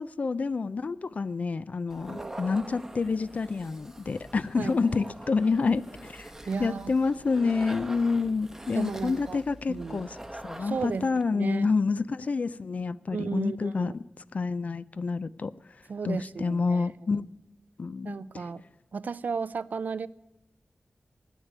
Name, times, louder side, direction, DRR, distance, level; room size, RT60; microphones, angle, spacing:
voice 1, 0.0-6.3 6.6-14.0 14.3-15.5 16.0-17.2 17.8-18.4, left 4 dB, 55° left, 0.4 m, -28 dB
sound 1, 1.9-11.2, right 1 dB, 15° right, 0.8 m, -44 dB
voice 2, 6.5-6.9 8.7-9.4 9.7-10.0 10.6-11.1 11.3-11.7 13.1-13.9 15.9-16.9 17.1-17.2 18.1-18.6 18.9-20.1, right 5 dB, 70° right, 0.4 m, -34 dB
10.0 x 8.2 x 9.7 m
wide cardioid pair, 100°, 3 cm